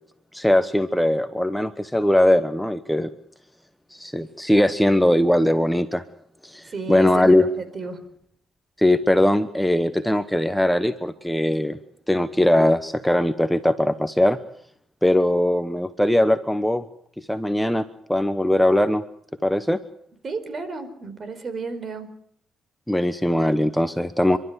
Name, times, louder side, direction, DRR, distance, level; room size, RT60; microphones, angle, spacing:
voice 1, 0.3-3.1 3.9-6.0 6.4-7.5 8.8-11.8 12.1-14.4 15.0-16.8 17.2-17.8 18.1-19.0 19.4-19.8 22.9-24.4, left 1 dB, 5° left, 10 dB, 1.0 m, -20 dB
voice 2, 6.6-8.0 20.2-22.1, right 4 dB, 45° right, 11 dB, 4.5 m, -32 dB
29.0 x 12.5 x 9.6 m, 0.69 s
cardioid pair, 90°, 0 cm